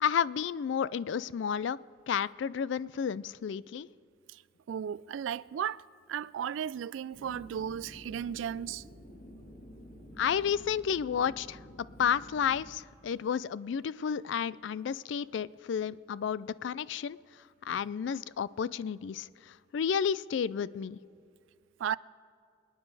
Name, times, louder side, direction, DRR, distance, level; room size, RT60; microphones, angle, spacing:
voice 1, 0.0-1.8 2.1-3.9 10.2-11.6 12.0-21.0, left 7 dB, 75° left, 0.3 m, -31 dB
voice 2, 4.7-5.8 6.1-8.8 21.8-22.0, right 8 dB, 85° right, 0.3 m, -35 dB
sound 1, 7.1-12.7, equal, 45° left, 2.1 m, -50 dB
26.0 x 9.6 x 4.8 m
head